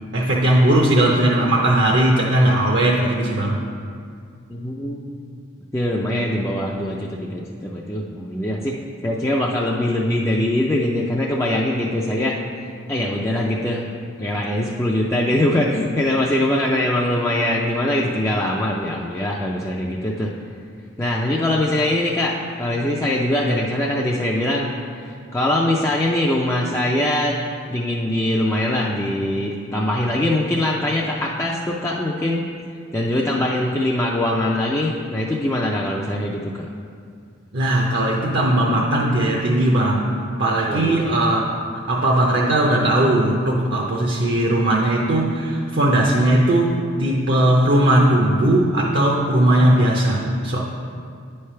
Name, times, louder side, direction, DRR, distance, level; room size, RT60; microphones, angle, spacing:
voice 1, 0.1-3.6 37.5-40.1 40.4-41.4 41.9-50.6, right 1 dB, 55° right, -2 dB, 0.6 m, -18 dB
voice 2, 4.5-5.3 5.7-12.4 12.9-13.9 14.2-20.3 21.0-27.4 27.7-32.4 32.9-36.7 40.7-41.1, left 1 dB, 15° left, -3 dB, 0.3 m, -22 dB
9.4 x 3.3 x 5.6 m, 2.3 s
head